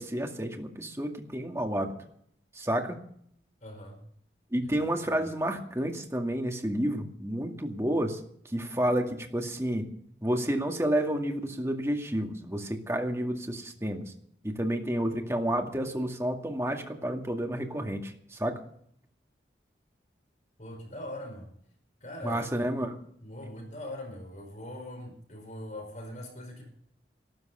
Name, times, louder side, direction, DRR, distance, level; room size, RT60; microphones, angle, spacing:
voice 1, 0.0-1.9 2.5-3.0 4.5-8.2 8.5-9.8 10.2-14.0 14.4-18.6 22.2-23.0, right 1 dB, 15° right, 3 dB, 2.2 m, -30 dB
voice 2, 3.6-4.0 4.6-4.7 20.6-21.5 22.0-22.5 23.2-26.7, left 1 dB, 40° left, 2 dB, 5.2 m, -41 dB
13.5 x 13.0 x 6.9 m, 0.66 s
head